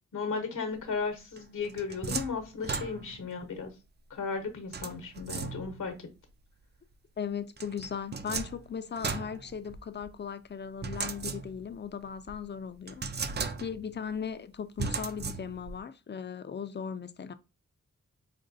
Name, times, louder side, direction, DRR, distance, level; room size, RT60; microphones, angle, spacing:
voice 1, 0.1-3.7 4.1-6.1, left 5 dB, 70° left, 0.9 m, -35 dB
sound 1, 1.4-3.3 4.7-5.9 7.6-10.1 10.8-11.8 12.3-12.4 12.9-14.0 14.8-15.8, right 5 dB, 35° right, 0.4 m, -36 dB
voice 2, 7.2-13.1 13.6-17.3, left 7 dB, 35° left, 0.4 m, -37 dB
5.1 x 2.2 x 2.5 m
cardioid pair, 55°, 32 cm